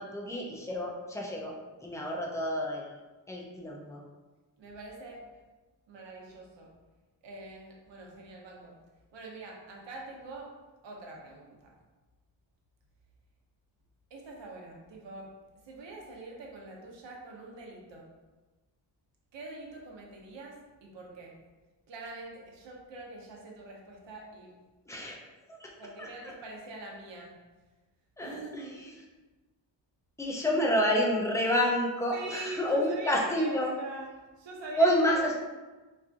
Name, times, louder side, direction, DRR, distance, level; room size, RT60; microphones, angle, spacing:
voice 1, 0.0-1.5 1.8-2.8 3.3-4.0 24.9-25.2 25.5-25.7 26.0-26.3 28.2-28.9 30.2-33.7 34.8-35.4, equal, 5° left, -1 dB, 0.4 m, -29 dB
voice 2, 4.6-5.2 5.9-6.7 7.2-8.8 9.1-10.5 10.8-11.8 14.1-15.3 15.6-18.1 19.3-21.4 21.9-24.5 25.8-27.4 28.2-29.0 32.1-34.1 34.4-35.4, right 2 dB, 70° right, -1 dB, 0.9 m, -44 dB
4.3 x 2.4 x 2.5 m, 1.2 s
wide cardioid pair, 135°, 46 cm